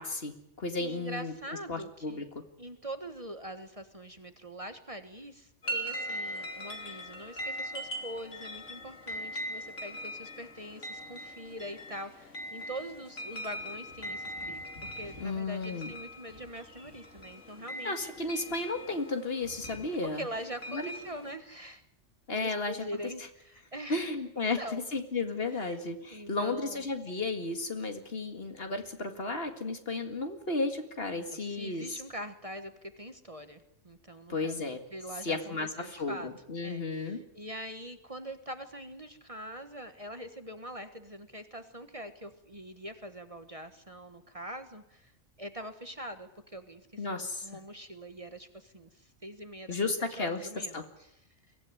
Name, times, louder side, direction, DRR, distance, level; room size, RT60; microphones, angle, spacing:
voice 1, 0.0-1.3 1.7-2.3 15.2-16.0 17.8-20.3 20.7-20.9 22.3-22.8 23.9-32.0 34.3-34.8 35.2-37.2 47.0-47.5 49.7-50.5 50.7-50.9, left 3 dB, 50° left, 6 dB, 2.2 m, -33 dB
voice 2, 0.8-2.3 2.6-18.1 20.1-21.8 22.3-24.0 24.4-24.9 25.5-25.8 26.1-26.9 31.1-34.6 34.9-36.3 36.6-45.1 45.4-51.2, equal, 30° right, 8 dB, 1.4 m, -43 dB
sound 1, 5.6-21.3, equal, 75° left, 3.5 m, -41 dB
23.0 x 16.0 x 9.6 m, 0.80 s
omnidirectional pair, 1.3 m